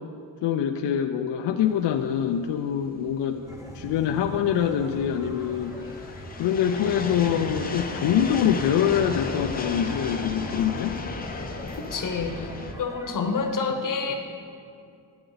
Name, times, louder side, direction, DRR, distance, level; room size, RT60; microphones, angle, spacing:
voice 1, 0.4-3.4 3.7-5.7 6.0-11.0, left 9 dB, 70° left, 5 dB, 0.5 m, -25 dB
sound 1, 1.8-12.7, left 3 dB, 20° left, 0.6 m, -35 dB
sound 2, 3.5-13.5, equal, 5° right, 0.8 m, -44 dB
voice 2, 11.9-12.5 12.8-14.1, left 4 dB, 45° left, 4 dB, 0.9 m, -27 dB
11.5 x 7.9 x 3.9 m, 2.4 s
wide cardioid pair, 130°, 43 cm